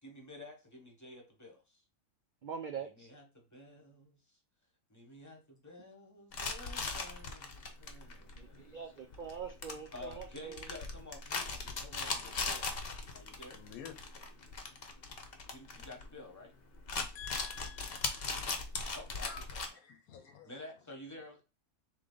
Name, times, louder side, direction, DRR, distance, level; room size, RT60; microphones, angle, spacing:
voice 1, 0.0-1.8 2.8-4.2 4.9-8.9 9.9-12.8 13.1-13.6 15.5-16.5 18.9-19.8 20.4-21.4, left 2 dB, 15° left, 1.1 m, -51 dB
voice 2, 2.4-3.1 8.4-10.6, right 6 dB, 85° right, 0.4 m, -43 dB
sound 1, 6.3-16.5 16.8-19.7, left 4 dB, 50° left, 0.9 m, -39 dB
voice 3, 13.5-14.0 17.1-18.5 19.2-19.4 19.7-20.5, left 8 dB, 85° left, 1.2 m, -49 dB
3.8 x 3.2 x 3.8 m
omnidirectional pair, 1.5 m